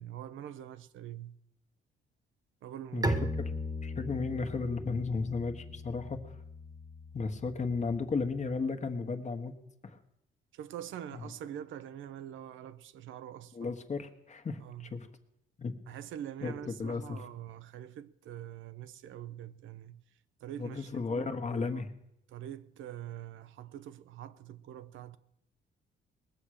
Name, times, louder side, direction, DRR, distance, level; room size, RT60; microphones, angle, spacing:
voice 1, 0.0-1.4 2.6-3.3 10.5-13.7 14.6-14.9 15.9-20.0 20.4-21.8 22.3-25.2, right 10 dB, 80° right, 0.7 m, -44 dB
voice 2, 2.9-3.5 3.8-6.4 7.1-9.6 9.8-10.0 13.5-15.1 15.6-15.8 16.4-16.5 16.8-17.2 20.6-21.9, left 4 dB, 35° left, 1.4 m, -34 dB
Bowed string instrument, 3.0-8.6, equal, 20° right, 1.3 m, -38 dB
20.0 x 7.3 x 6.5 m
cardioid pair, 90°, 20 cm